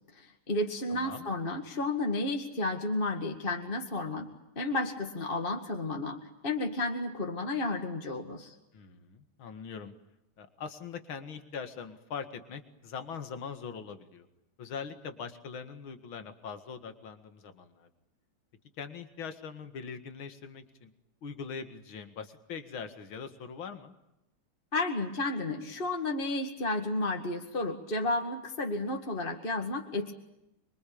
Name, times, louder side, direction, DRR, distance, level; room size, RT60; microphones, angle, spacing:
voice 1, 0.1-8.5 24.7-30.1, left 2 dB, 25° left, 4 dB, 2.2 m, -32 dB
voice 2, 0.9-1.3 8.7-9.9 10.4-14.3 14.6-17.9 18.8-20.9 21.2-23.9, left 6 dB, 75° left, 9 dB, 2.7 m, -42 dB
27.0 x 23.5 x 8.7 m, 0.89 s
omnidirectional pair, 2.3 m